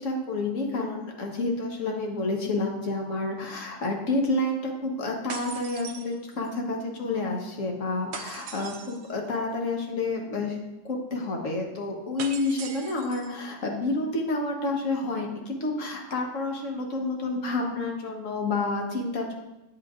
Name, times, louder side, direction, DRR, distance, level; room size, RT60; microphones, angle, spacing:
voice 1, 0.0-10.6 10.8-19.4, left 2 dB, 90° left, 1 dB, 1.5 m, -29 dB
sound 1, 5.3-6.6 8.1-9.1 12.2-13.4, right 6 dB, 65° right, 0.9 m, -40 dB
9.0 x 7.8 x 2.5 m, 0.97 s
omnidirectional pair, 1.3 m